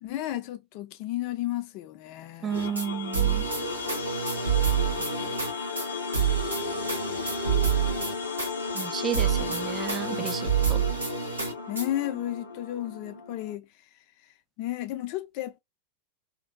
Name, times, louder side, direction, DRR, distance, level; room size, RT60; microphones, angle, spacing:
voice 1, 0.0-2.8 5.0-5.3 11.7-13.7 14.6-15.6, left 14 dB, 45° left, 0.4 m, -33 dB
voice 2, 2.4-3.4 8.7-10.8, right 7 dB, 25° right, 0.3 m, -32 dB
sound 1, 2.5-13.5, left 4 dB, 85° left, 0.7 m, -34 dB
sound 2, 2.5-2.9 3.1-5.5 5.8-5.9 6.1-8.5 8.8-8.9 9.1-11.9, right 7 dB, 80° right, 0.8 m, -28 dB
2.8 x 2.1 x 2.2 m
figure-of-eight pair, 90°, 0 cm